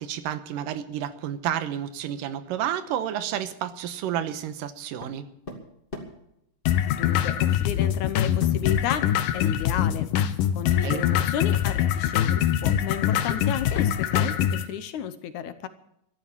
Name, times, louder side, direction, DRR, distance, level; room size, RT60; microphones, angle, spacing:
voice 1, 0.0-5.3 10.8-11.0, right 10 dB, 90° right, 12 dB, 2.6 m, -30 dB
sound 1, 5.0-5.2 5.5-6.3 7.8-8.0 8.4-8.5 9.0-9.2 10.0-10.1 10.6-11.7 12.8-12.9 13.3-15.0, left 1 dB, 20° left, 2.2 m, -40 dB
sound 2, 6.7-14.7, left 10 dB, 90° left, 2.6 m, -24 dB
voice 2, 6.9-9.1 9.3-10.1 10.5-15.7, left 9 dB, 70° left, 11 dB, 2.1 m, -32 dB
14.0 x 12.0 x 7.2 m, 0.78 s
omnidirectional pair, 3.8 m